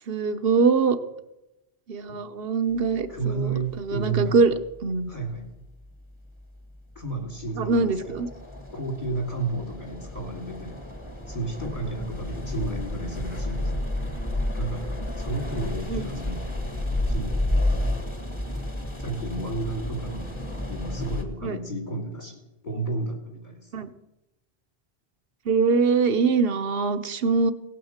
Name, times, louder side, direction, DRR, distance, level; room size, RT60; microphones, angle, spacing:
voice 1, 0.1-1.0 1.9-4.5 4.8-5.1 7.6-8.3 15.9-16.0 21.4-21.6 23.7-23.9 25.5-27.5, right 4 dB, 65° right, 11 dB, 1.1 m, -23 dB
voice 2, 3.1-4.4 5.1-5.5 7.0-8.2 8.7-10.8 11.3-13.8 14.6-16.5 17.1-17.4 19.0-20.3 20.7-23.7, right 3 dB, 45° left, 2 dB, 2.5 m, -32 dB
sound 1, 3.5-3.7 7.0-7.1 7.3-21.2, left 1 dB, 25° left, 1.9 m, -31 dB
17.5 x 8.7 x 7.3 m, 0.97 s
omnidirectional pair, 1.1 m